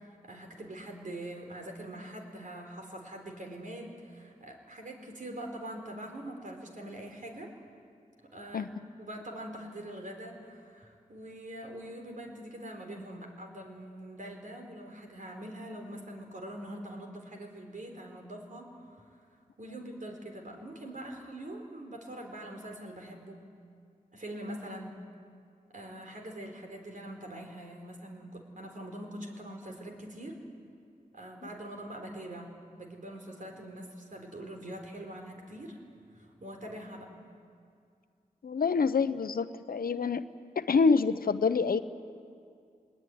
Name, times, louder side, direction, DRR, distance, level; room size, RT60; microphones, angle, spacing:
voice 1, 0.0-7.5 8.2-8.7 9.0-19.2 19.6-23.4 24.1-24.9 25.7-30.4 31.1-35.8 36.1-37.1, right 1 dB, 60° right, 2 dB, 4.0 m, -43 dB
voice 2, 38.4-40.2 40.6-41.8, left 5 dB, 75° left, 12 dB, 0.8 m, -26 dB
20.5 x 20.5 x 9.5 m, 2.3 s
cardioid pair, 55°, 15 cm